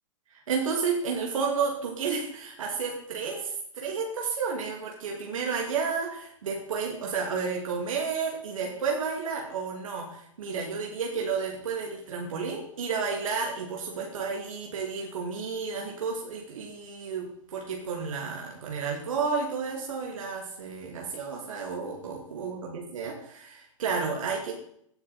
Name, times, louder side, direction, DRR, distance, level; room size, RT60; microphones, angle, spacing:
voice 1, 0.3-24.5, right 5 dB, 75° right, -1 dB, 2.7 m, -31 dB
16.5 x 9.7 x 4.4 m, 0.69 s
hypercardioid pair, 105°, 17 cm